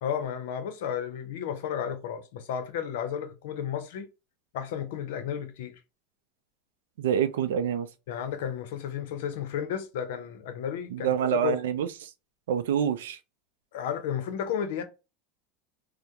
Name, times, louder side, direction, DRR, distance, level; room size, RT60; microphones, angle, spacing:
voice 1, 0.0-4.1 4.5-5.8 8.1-11.1 11.4-11.6 13.7-14.8, left 8 dB, 80° left, 0.6 m, -33 dB
voice 2, 7.0-7.9 10.9-12.1 12.5-13.2, right 9 dB, 90° right, 0.3 m, -27 dB
2.2 x 2.1 x 2.7 m
supercardioid pair, 115°, 0 cm